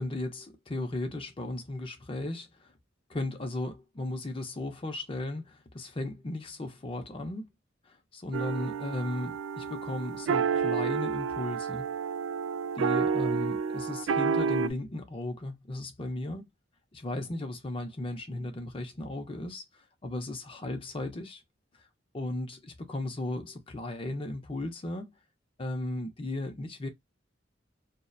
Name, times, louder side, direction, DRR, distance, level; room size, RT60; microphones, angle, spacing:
voice 1, 0.0-2.7 3.1-7.5 7.8-11.9 12.8-16.5 16.9-21.4 22.1-25.1 25.6-26.9, left 2 dB, 30° left, 0.5 m, -36 dB
sound 1, 8.3-14.7, right 6 dB, 90° right, 0.3 m, -30 dB
2.6 x 2.1 x 2.3 m
head